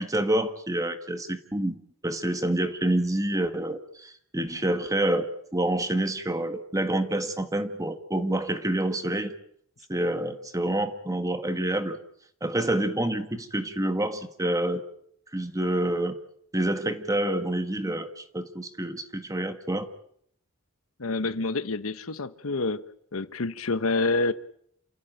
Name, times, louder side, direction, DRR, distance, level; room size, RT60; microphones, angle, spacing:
voice 1, 0.0-1.8 2.0-9.3 9.9-12.0 12.4-14.8 15.3-16.2 16.5-19.9, right 1 dB, 15° right, 8 dB, 1.5 m, -27 dB
voice 2, 21.0-22.8 23.1-24.3, left 3 dB, 85° left, 12 dB, 1.0 m, -27 dB
28.5 x 15.5 x 9.1 m, 0.69 s
head